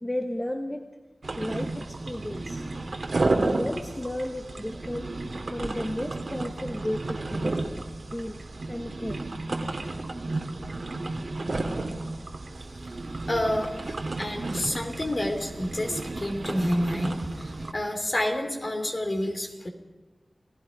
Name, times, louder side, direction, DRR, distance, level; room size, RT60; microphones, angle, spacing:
voice 1, 0.0-0.9 1.4-2.7 3.2-5.1 5.5-7.6 8.0-8.4 8.7-9.2 9.8-9.9, left 1 dB, 15° left, 5 dB, 1.2 m, -33 dB
sound 1, 1.2-17.7, right 2 dB, 60° right, 2.0 m, -32 dB
voice 2, 13.3-13.7 14.2-19.7, left 1 dB, 35° left, 4 dB, 3.2 m, -29 dB
30.0 x 18.0 x 5.3 m, 1.2 s
wide cardioid pair, 85°, 0 cm